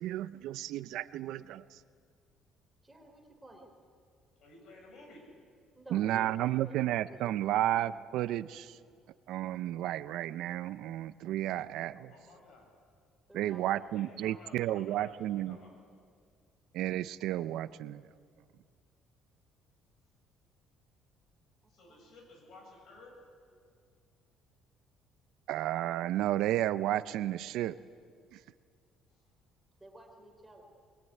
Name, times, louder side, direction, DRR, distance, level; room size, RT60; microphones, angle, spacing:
voice 1, 0.0-1.8 5.9-8.8 9.3-12.1 13.3-15.6 16.7-18.1 25.5-27.8 28.3-28.4, right 13 dB, 75° right, 15 dB, 0.6 m, -32 dB
voice 2, 2.8-3.7 5.8-7.2 13.3-13.8 21.9-22.0 29.8-30.7, right 2 dB, 10° right, 2 dB, 3.7 m, -51 dB
voice 3, 4.4-5.3 12.1-12.7 13.7-15.8 21.7-23.3 29.1-29.2, left 2 dB, 55° left, 1 dB, 7.7 m, -55 dB
24.0 x 21.0 x 9.4 m, 2.1 s
cardioid pair, 145°, 0 cm